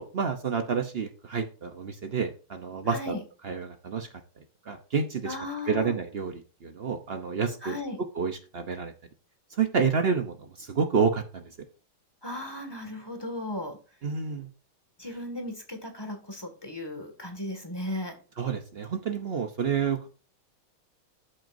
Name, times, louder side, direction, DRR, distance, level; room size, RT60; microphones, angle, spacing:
voice 1, 0.0-3.2 3.4-4.1 4.7-5.4 5.7-7.8 8.1-8.9 9.6-11.5 14.0-14.5 18.4-20.1, right 5 dB, 60° right, 6 dB, 0.6 m, -29 dB
voice 2, 2.9-3.2 5.2-6.0 7.6-8.0 12.2-13.8 15.0-18.2, left 1 dB, 10° left, 4 dB, 1.8 m, -36 dB
13.0 x 7.8 x 2.7 m, 0.36 s
omnidirectional pair, 2.2 m